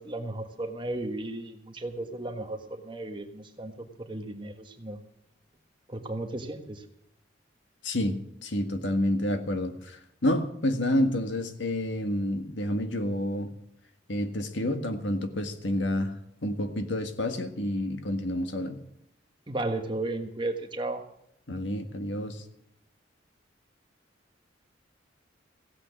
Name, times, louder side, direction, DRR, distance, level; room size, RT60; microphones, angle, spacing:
voice 1, 0.0-5.0 5.9-6.8 19.5-21.0, right 2 dB, 25° right, 6 dB, 1.5 m, -34 dB
voice 2, 7.8-8.1 8.4-13.5 14.1-16.1 16.4-18.8 21.5-22.4, left 1 dB, 75° left, 7 dB, 1.7 m, -29 dB
16.0 x 8.5 x 8.2 m, 0.76 s
head